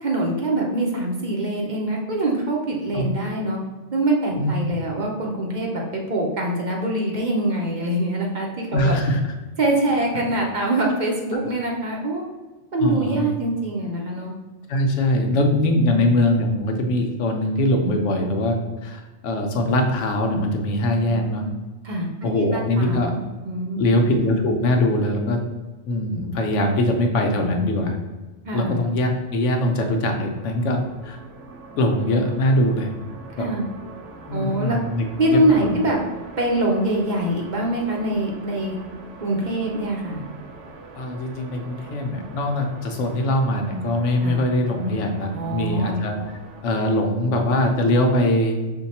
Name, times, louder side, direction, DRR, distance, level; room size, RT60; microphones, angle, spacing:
voice 1, 0.0-3.6 3.9-9.0 9.6-12.2 12.7-14.3 15.7-16.0 21.1-21.5 21.8-23.2 23.4-24.0 28.5-28.8 33.4-33.7 34.3-34.8 35.2-36.0 36.4-38.7 39.2-40.2 44.2-44.4 45.3-46.0, right 1 dB, 45° right, -1 dB, 0.7 m, -24 dB
voice 2, 8.7-9.2 12.8-13.3 14.7-18.6 18.8-21.4 22.2-23.1 23.8-25.4 25.9-28.0 28.5-31.2 31.8-32.9 33.4-33.5 34.3-35.8 41.0-48.6, left 1 dB, 85° left, 3 dB, 1.0 m, -22 dB
sound 1, 29.4-46.6, right 3 dB, 90° right, 1.0 m, -43 dB
5.5 x 2.2 x 4.1 m, 1.2 s
omnidirectional pair, 1.2 m